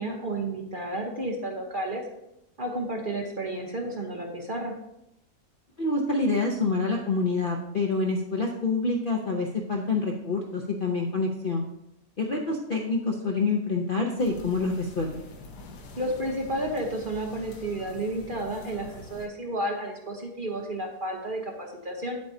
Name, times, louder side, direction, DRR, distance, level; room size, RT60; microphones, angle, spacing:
voice 1, 0.0-2.0 2.6-4.7 16.0-22.2, right 1 dB, 40° right, 1 dB, 0.9 m, -31 dB
voice 2, 5.8-11.6 12.2-15.3, left 3 dB, 50° left, 0 dB, 0.6 m, -27 dB
sound 1, 14.2-19.3, left 2 dB, 85° left, 1.5 m, -45 dB
8.1 x 8.1 x 2.7 m, 0.85 s
omnidirectional pair, 1.7 m